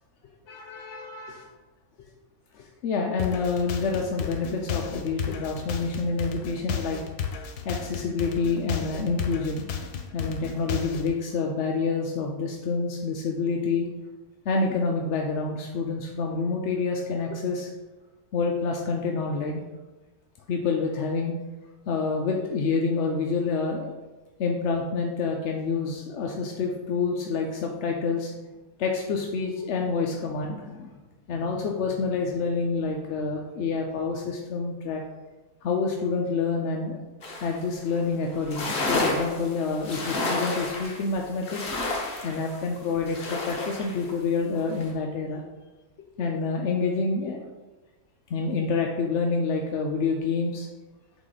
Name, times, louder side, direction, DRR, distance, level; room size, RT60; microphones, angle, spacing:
voice 1, 0.5-1.5 2.5-7.0 7.6-9.6 10.1-13.9 14.5-17.7 18.3-19.6 20.5-21.3 21.9-23.9 24.4-28.3 28.8-31.0 31.3-35.0 35.6-37.0 37.4-41.6 42.2-45.4 46.2-47.4 48.3-50.7, left 4 dB, 65° left, 1 dB, 0.7 m, -28 dB
sound 1, 3.2-11.1, left 7 dB, 85° left, 1.2 m, -33 dB
sound 2, 37.2-37.6 37.9-38.0 38.3-44.1 44.6-44.9, left 2 dB, 50° left, 1.2 m, -31 dB
8.0 x 3.0 x 4.0 m, 1.2 s
omnidirectional pair, 1.6 m